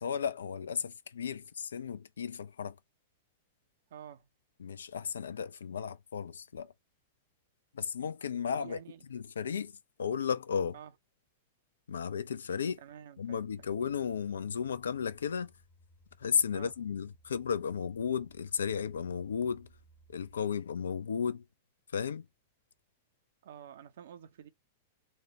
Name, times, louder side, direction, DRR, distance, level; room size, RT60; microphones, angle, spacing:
voice 1, 0.0-2.8 4.6-6.7 7.7-8.8 9.1-10.8 11.9-12.8 13.2-15.5 16.2-19.7 20.1-21.4 21.9-22.3, left 7 dB, 70° left, 0.4 m, -34 dB
voice 2, 3.9-4.3 8.6-9.0 10.7-10.9 12.8-13.5 16.5-16.7 23.4-24.5, right 9 dB, 60° right, 0.7 m, -49 dB
sound 1, 13.3-20.4, right 1 dB, 15° left, 0.8 m, -63 dB
4.3 x 2.2 x 2.9 m
figure-of-eight pair, 95°, 0 cm